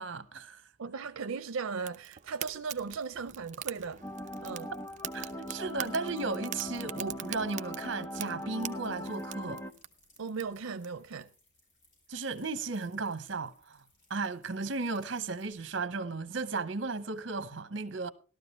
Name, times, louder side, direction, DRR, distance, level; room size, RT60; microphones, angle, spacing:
voice 1, 0.0-0.6 4.7-4.8 5.1-9.6 12.1-13.8 14.1-18.1, right 3 dB, 65° right, 0.9 m, -35 dB
voice 2, 0.8-4.1 4.4-4.7 10.2-11.3, right 5 dB, 90° right, 0.6 m, -37 dB
Fire, 1.8-10.9, right 11 dB, 35° right, 0.7 m, -44 dB
sound 1, 4.0-9.7, left 1 dB, 15° left, 0.7 m, -40 dB
sound 2, 8.7-15.5, left 2 dB, 65° left, 6.7 m, -67 dB
14.5 x 12.5 x 3.2 m
head